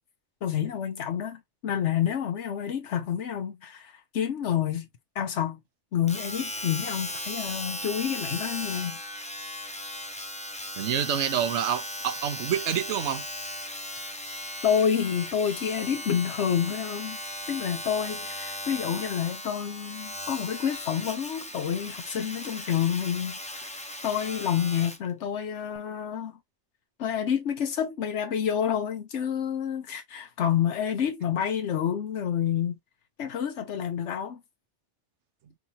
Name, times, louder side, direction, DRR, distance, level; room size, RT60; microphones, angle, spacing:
voice 1, 0.4-4.9 5.1-5.6 5.9-9.0 14.6-17.2 17.5-26.4 27.0-32.7 33.2-34.4, left 8 dB, 85° left, 1.1 m, -28 dB
Domestic sounds home sounds, 6.1-25.1 25.8-25.9, left 1 dB, 5° left, 0.7 m, -37 dB
voice 2, 10.8-13.2, right 9 dB, 80° right, 1.1 m, -27 dB
4.9 x 2.8 x 2.8 m
omnidirectional pair, 1.2 m